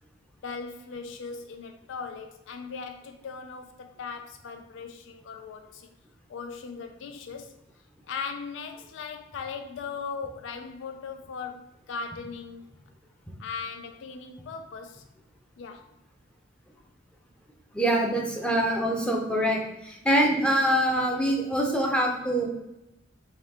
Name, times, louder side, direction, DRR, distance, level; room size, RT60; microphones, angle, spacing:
voice 1, 0.4-5.9 6.3-7.5 8.0-12.6 13.4-15.0 15.6-15.9, left 5 dB, 70° left, 6 dB, 0.4 m, -38 dB
voice 2, 17.7-22.5, right 1 dB, 5° left, 0 dB, 0.6 m, -24 dB
5.2 x 2.4 x 3.5 m, 0.90 s
head